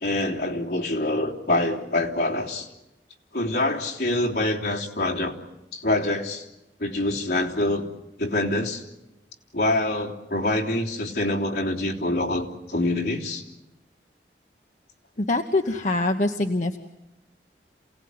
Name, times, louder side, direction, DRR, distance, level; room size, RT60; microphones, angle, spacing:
voice 1, 0.0-2.7 3.3-5.3 5.7-6.4 6.8-7.9 8.2-8.8 9.5-13.4, left 1 dB, 65° left, -1 dB, 3.3 m, -25 dB
voice 2, 15.2-16.8, left 2 dB, 45° left, 5 dB, 1.0 m, -24 dB
28.0 x 18.0 x 9.6 m, 0.95 s
head